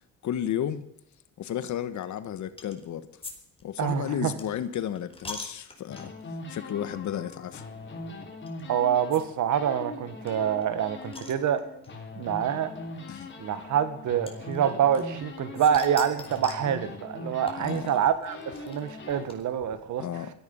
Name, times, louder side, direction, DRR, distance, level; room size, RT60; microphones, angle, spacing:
voice 1, 0.2-0.9 1.4-3.1 3.6-6.1 6.5-7.7 12.6-12.8 13.1-13.3 17.6-18.0 20.0-20.3, left 10 dB, 70° left, 12 dB, 1.4 m, -33 dB
sound 1, 2.6-2.9 3.2-6.3 6.9-7.1 7.3-7.4 8.5-8.6 9.1-9.2 9.5-9.6 9.8-9.9 10.3-11.9 12.8-12.9 14.3-15.3 15.6-16.7 17.5-19.7, left 2 dB, 20° left, 4.1 m, -43 dB
voice 2, 3.8-4.3 8.7-11.6 12.2-12.7 13.4-20.0, right 9 dB, 75° right, 11 dB, 1.7 m, -26 dB
sound 2, 5.9-9.3 9.5-19.2, left 2 dB, 40° left, 4.5 m, -41 dB
17.0 x 14.0 x 5.5 m, 0.73 s
cardioid pair, 90°, 30 cm